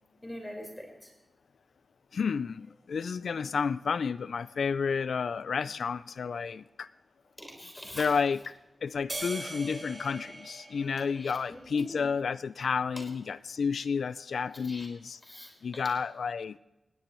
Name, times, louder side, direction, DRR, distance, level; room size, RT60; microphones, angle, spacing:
voice 1, 0.2-1.1 7.4-8.2 11.0-12.1 13.0-13.1 14.6-14.9 15.2-15.5, equal, 15° left, 2 dB, 4.6 m, -44 dB
voice 2, 2.1-6.9 7.9-8.4 8.8-15.2 15.6-16.6, left 5 dB, 80° left, 16 dB, 0.4 m, -31 dB
sound 1, 9.1-11.7, right 2 dB, 25° right, 3.4 m, -41 dB
20.0 x 16.5 x 3.1 m, 0.99 s
wide cardioid pair, 130°, 0 cm